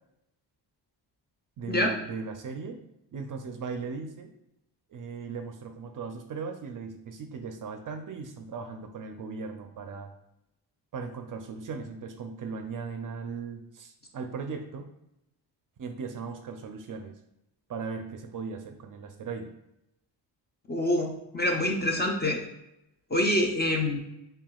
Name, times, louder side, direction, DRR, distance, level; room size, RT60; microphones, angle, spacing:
voice 1, 1.6-2.8 3.1-4.3 4.9-10.1 10.9-14.9 15.8-17.2 17.7-19.5, right 5 dB, 50° right, 5 dB, 0.4 m, -38 dB
voice 2, 20.7-22.4 23.1-24.0, left 1 dB, 25° left, 1 dB, 0.4 m, -26 dB
5.8 x 2.3 x 2.3 m, 0.85 s
wide cardioid pair, 120°, 44 cm